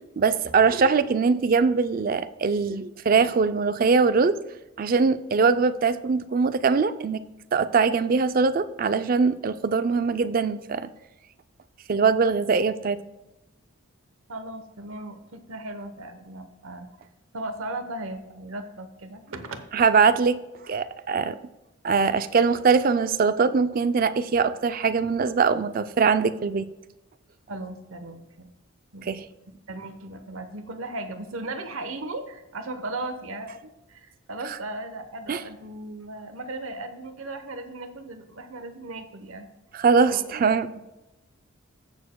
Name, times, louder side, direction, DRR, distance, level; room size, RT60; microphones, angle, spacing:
voice 1, 0.2-4.4 4.8-7.2 7.5-10.9 11.9-13.0 19.7-20.4 20.7-21.4 21.8-26.7 29.1-29.2 35.3-35.4 39.7-40.8, right 5 dB, 40° right, 12 dB, 0.4 m, -22 dB
voice 2, 14.3-16.9 17.3-19.7 27.5-28.5 28.9-29.1 29.7-39.5 40.1-40.4 40.7-40.8, right 2 dB, 80° right, 8 dB, 0.9 m, -37 dB
15.0 x 6.8 x 2.2 m, 0.98 s
head